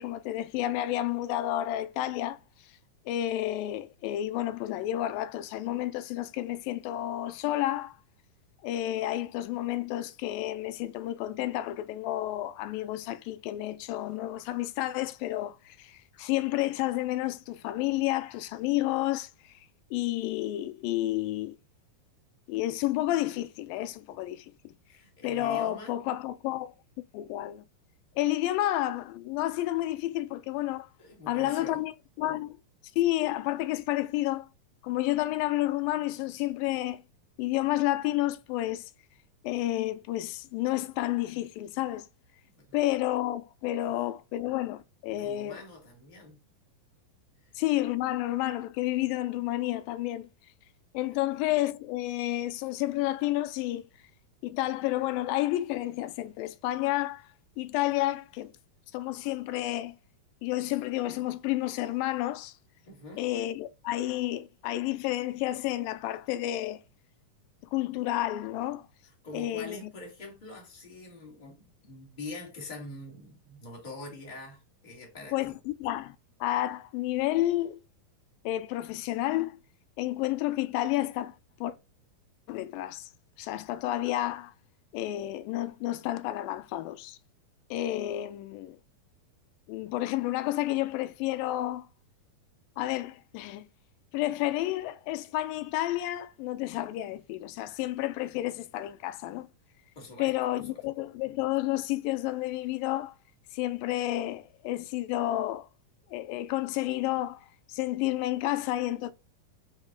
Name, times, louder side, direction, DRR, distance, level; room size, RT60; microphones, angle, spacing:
voice 1, 0.0-2.7 3.1-8.0 8.6-19.6 19.9-21.6 22.5-24.7 25.2-26.7 27.1-27.6 28.2-30.9 31.3-31.9 32.2-32.6 33.0-34.5 34.8-37.0 37.4-38.9 39.4-42.1 42.7-45.6 47.6-50.3 50.9-53.8 54.4-58.5 58.9-60.0 60.4-62.5 63.2-66.8 67.7-68.9 69.3-69.8 75.3-77.8 78.5-79.6 80.0-81.4 81.6-81.8 82.5-83.1 83.4-84.5 84.9-87.2 87.7-88.8 89.7-91.9 92.8-93.7 94.1-99.5 100.2-103.2 103.5-105.7 106.1-109.1, left 15 dB, 85° left, 2.3 m, -30 dB
voice 2, 24.9-25.9 31.0-31.8 32.3-32.4 42.6-42.8 43.8-43.9 45.2-46.4 62.8-63.3 69.2-75.6 100.0-100.8, left 2 dB, 15° left, 1.9 m, -44 dB
5.9 x 5.0 x 3.8 m
omnidirectional pair, 4.0 m